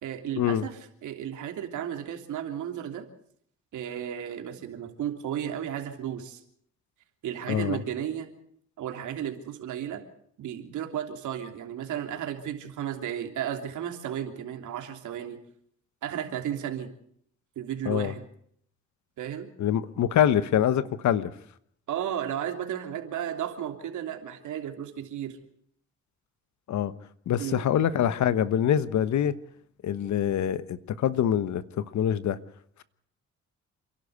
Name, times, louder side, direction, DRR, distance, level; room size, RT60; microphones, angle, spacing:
voice 1, 0.0-3.0 3.7-6.4 7.2-8.3 8.8-10.0 10.4-15.4 16.0-16.9 17.5-18.2 19.2-19.5 21.9-25.4 27.4-27.7, right 10 dB, 75° right, 3.2 m, -34 dB
voice 2, 7.5-7.8 17.9-18.1 19.6-21.3 26.7-26.9 27.3-29.3 29.8-32.4, left 10 dB, 70° left, 1.2 m, -25 dB
28.5 x 12.0 x 8.2 m
cardioid pair, 90°, 30 cm